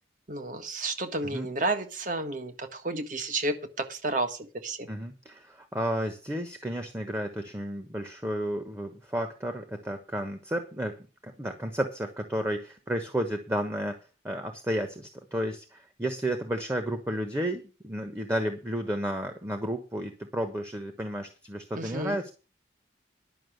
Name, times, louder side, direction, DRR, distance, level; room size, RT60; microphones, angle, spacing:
voice 1, 0.3-3.6 3.9-4.9 21.8-22.2, right 2 dB, 45° right, 7 dB, 1.6 m, -31 dB
voice 2, 4.9-10.9 11.2-14.0 14.2-22.3, equal, 15° right, 6 dB, 1.2 m, -32 dB
11.0 x 6.1 x 8.0 m, 0.34 s
head